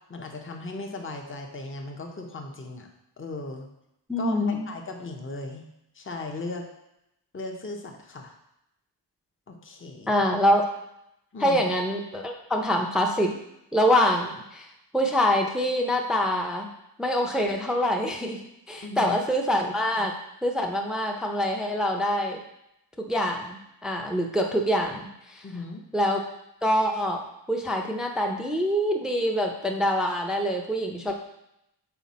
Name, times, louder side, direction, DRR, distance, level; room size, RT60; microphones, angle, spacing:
voice 1, 0.1-2.9 3.2-3.7 4.2-5.7 5.9-6.7 7.3-8.3 9.5-10.2 11.3-11.6 18.8-19.2 25.4-25.9, left 3 dB, 30° left, 2 dB, 0.7 m, -37 dB
voice 2, 4.1-4.7 10.1-10.6 11.4-13.3 13.7-14.7 14.9-16.7 17.0-18.4 18.7-20.1 20.4-22.4 23.1-25.4 25.9-26.2 26.6-27.2 27.5-31.1, equal, ahead, 1 dB, 0.5 m, -25 dB
5.8 x 4.6 x 4.1 m, 0.84 s
wide cardioid pair, 130°, 42 cm